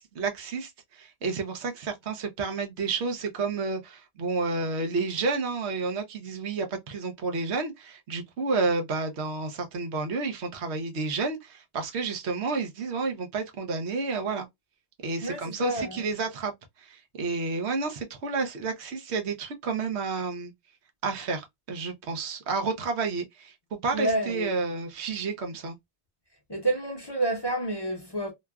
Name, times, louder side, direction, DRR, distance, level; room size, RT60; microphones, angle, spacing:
voice 1, 0.0-14.5 15.0-16.5 16.8-20.5 21.0-23.5 23.8-25.7, right 4 dB, 90° right, 1.0 m, -30 dB
voice 2, 15.2-16.1 23.9-24.6 26.5-28.3, right 2 dB, 30° left, 0.6 m, -29 dB
3.0 x 2.2 x 2.2 m
omnidirectional pair, 1.1 m